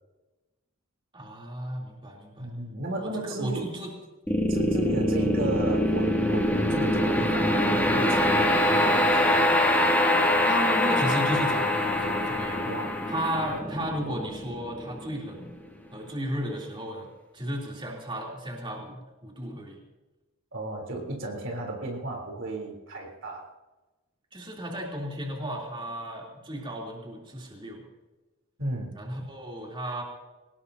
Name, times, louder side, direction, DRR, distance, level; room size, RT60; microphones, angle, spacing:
voice 1, 1.1-2.5 2.9-3.9 10.4-12.7 13.1-15.5 15.9-17.1 17.3-19.8 24.3-27.9 28.9-30.0, equal, 25° right, -2 dB, 3.3 m, -34 dB
voice 2, 2.4-3.7 4.5-9.4 12.6-12.9 20.5-23.5 28.6-28.9, right 2 dB, 60° right, 1 dB, 3.6 m, -34 dB
sound 1, 4.3-15.5, left 1 dB, 10° left, 2.3 m, -24 dB
23.5 x 19.5 x 2.8 m, 1.1 s
head